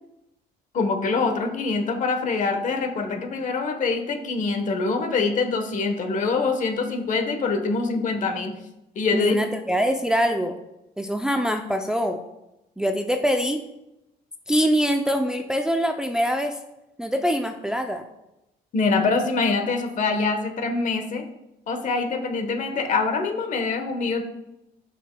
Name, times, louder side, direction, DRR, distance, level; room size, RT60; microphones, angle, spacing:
voice 1, 0.7-8.5 9.0-9.4 18.7-21.2 21.7-24.2, left 4 dB, 50° left, 6 dB, 1.1 m, -24 dB
voice 2, 9.1-10.5 11.0-12.2 12.8-13.6 14.5-16.6 17.0-18.0, equal, 5° right, 4 dB, 0.4 m, -24 dB
11.5 x 5.6 x 2.2 m, 0.91 s
cardioid pair, 110°, 17 cm